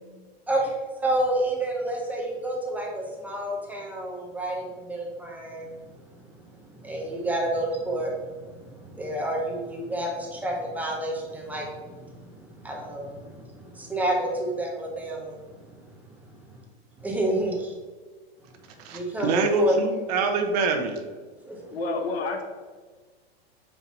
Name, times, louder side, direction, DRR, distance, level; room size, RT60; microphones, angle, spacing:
voice 1, 0.5-5.7 6.8-13.4 13.9-15.3 17.0-17.7 18.9-19.8 21.5-21.8, right 1 dB, 5° right, -1 dB, 0.6 m, -29 dB
voice 2, 18.8-21.0, right 4 dB, 40° right, 5 dB, 0.8 m, -25 dB
voice 3, 21.7-22.4, left 3 dB, 85° left, 4 dB, 1.3 m, -28 dB
5.5 x 4.6 x 4.0 m, 1.4 s
supercardioid pair, 155°, 31 cm